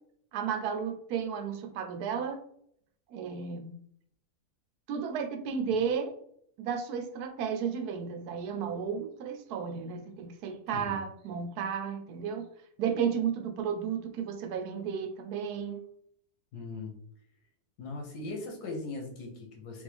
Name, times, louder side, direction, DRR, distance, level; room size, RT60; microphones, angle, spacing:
voice 1, 0.3-2.4 3.1-3.7 4.9-6.1 6.6-12.4 12.8-15.8, right 7 dB, 80° right, 6 dB, 1.1 m, -33 dB
voice 2, 16.5-16.9 17.8-19.8, left 3 dB, 80° left, 2 dB, 1.6 m, -39 dB
3.7 x 3.5 x 3.4 m, 0.69 s
omnidirectional pair, 1.6 m